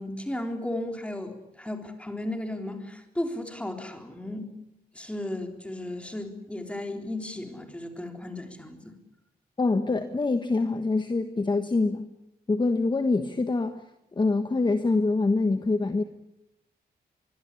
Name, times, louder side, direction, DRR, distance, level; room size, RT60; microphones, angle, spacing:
voice 1, 0.0-4.5 4.9-8.9, left 1 dB, 5° left, 4 dB, 3.8 m, -35 dB
voice 2, 9.6-12.1 12.5-13.9 14.1-16.0, left 3 dB, 25° left, 8 dB, 1.3 m, -25 dB
24.5 x 22.5 x 8.5 m, 0.85 s
wide cardioid pair, 120°, 17 cm